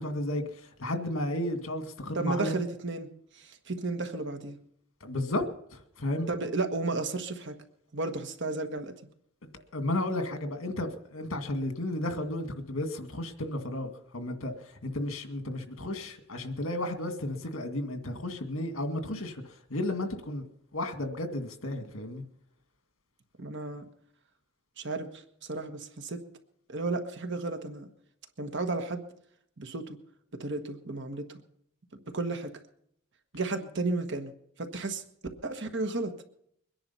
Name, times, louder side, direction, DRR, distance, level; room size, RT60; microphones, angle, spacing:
voice 1, 0.0-2.6 5.0-5.4 5.7-6.3 9.4-20.4 20.7-22.2, left 1 dB, 70° left, 6 dB, 2.1 m, -33 dB
voice 2, 2.1-3.1 3.3-4.6 6.3-7.6 7.9-8.9 23.4-23.9 24.8-26.2 26.7-27.9 28.4-29.0 29.6-30.0 30.4-31.4 32.1-32.5 33.3-34.3 34.6-35.0 35.4-36.2, right 3 dB, 60° right, 6 dB, 1.4 m, -33 dB
23.0 x 10.5 x 5.6 m, 0.72 s
head